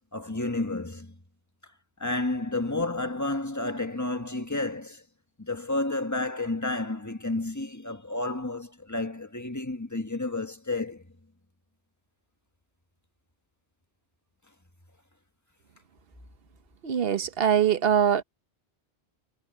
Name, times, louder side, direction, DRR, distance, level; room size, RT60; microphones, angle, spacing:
voice 1, 0.1-1.1 2.0-5.0 5.4-11.0, left 2 dB, 15° left, 1.6 m, -31 dB
voice 2, 16.8-18.2, right 8 dB, 60° right, 1.1 m, -23 dB
omnidirectional pair, 1.1 m